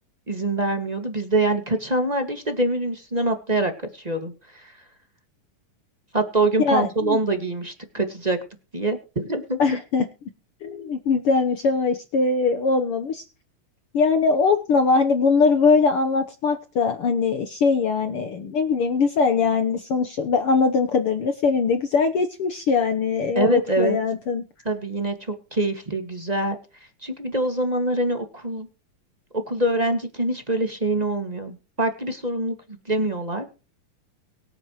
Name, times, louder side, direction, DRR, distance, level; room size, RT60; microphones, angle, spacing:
voice 1, 0.3-4.7 6.1-8.4 8.7-9.6 23.3-24.0 24.6-26.5 27.0-28.7 29.5-32.5 32.9-33.5, right 2 dB, 20° right, 6 dB, 1.1 m, -24 dB
voice 2, 6.6-7.2 9.6-10.1 10.6-13.2 13.9-24.4, left 4 dB, 65° left, 7 dB, 1.5 m, -21 dB
23.5 x 9.0 x 3.1 m, 0.33 s
omnidirectional pair, 3.8 m